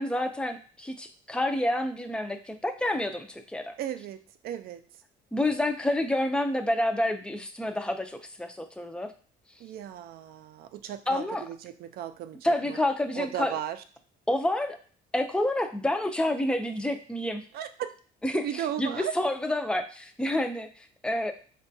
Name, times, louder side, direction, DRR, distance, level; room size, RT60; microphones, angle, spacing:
voice 1, 0.0-3.7 5.3-9.1 11.1-11.4 12.4-13.5 14.3-14.8 15.1-17.4 18.2-18.4 18.8-20.7 21.0-21.3, left 1 dB, 5° left, 6 dB, 0.4 m, -28 dB
voice 2, 3.8-4.9 9.6-12.8 13.2-13.8 17.5-17.9 18.3-19.1, right 11 dB, 65° right, 10 dB, 0.4 m, -36 dB
4.5 x 2.2 x 2.6 m, 0.42 s
cardioid pair, 110°, 17 cm